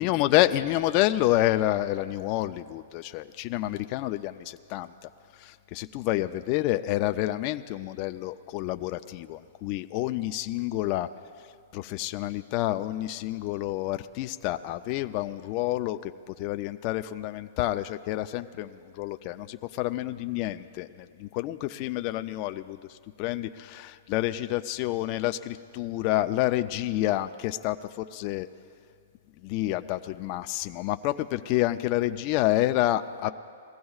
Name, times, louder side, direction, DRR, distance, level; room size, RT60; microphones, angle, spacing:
voice 1, 0.0-4.9 5.4-11.1 11.7-28.5 29.4-33.3, left 15 dB, 35° left, 9 dB, 0.4 m, -28 dB
21.5 x 15.5 x 2.4 m, 2.2 s
hypercardioid pair, 155°, 0 cm